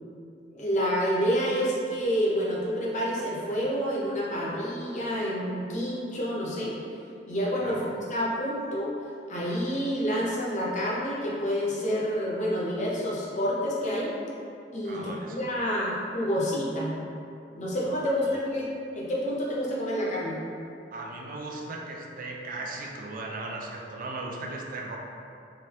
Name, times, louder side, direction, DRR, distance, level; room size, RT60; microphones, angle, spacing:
voice 1, 0.5-6.7 7.3-8.9 9.3-14.1 14.7-16.9 17.5-20.4, equal, 40° left, -5 dB, 0.6 m, -28 dB
voice 2, 14.8-15.6 18.2-18.4 20.9-25.0, right 2 dB, 50° right, -1 dB, 0.4 m, -37 dB
3.2 x 2.6 x 2.8 m, 2.6 s
head